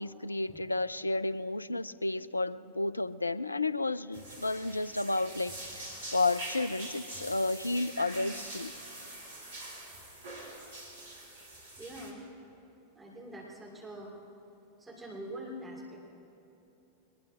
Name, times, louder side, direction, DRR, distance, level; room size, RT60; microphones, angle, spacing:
voice 1, 0.0-5.9 6.1-8.7, left 2 dB, 80° left, 16 dB, 0.3 m, -32 dB
sound 1, 4.1-12.1, right 1 dB, 70° right, 2.6 m, -44 dB
voice 2, 11.8-12.3 12.9-14.1 14.8-16.1, right 1 dB, 10° right, -4 dB, 3.2 m, -44 dB
22.0 x 21.0 x 2.5 m, 2.9 s
figure-of-eight pair, 90°, 0 cm